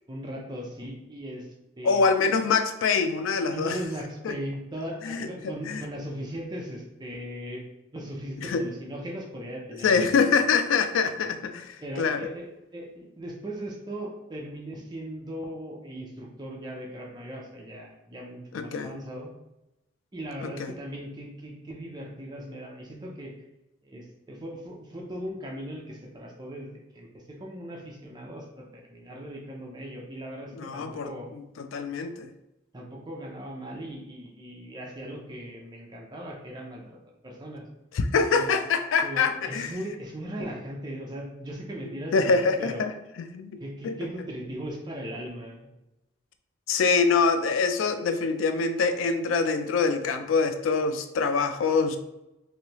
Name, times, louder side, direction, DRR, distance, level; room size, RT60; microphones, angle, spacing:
voice 1, 0.1-1.5 1.8-2.3 3.5-7.6 7.9-10.2 11.8-12.5 12.7-19.3 20.1-23.3 23.8-31.3 32.7-37.0 37.2-37.7 38.3-38.5 39.0-42.8 43.6-45.7, equal, 20° right, 0 dB, 0.5 m, -38 dB
voice 2, 1.8-3.8 4.2-4.3 5.0-5.8 8.5-8.6 9.8-12.2 18.5-18.9 20.4-20.7 30.6-32.3 37.9-39.7 42.1-42.9 43.3-44.0 46.7-52.0, left 5 dB, 85° left, 9 dB, 0.3 m, -25 dB
3.2 x 2.6 x 2.9 m, 0.93 s
head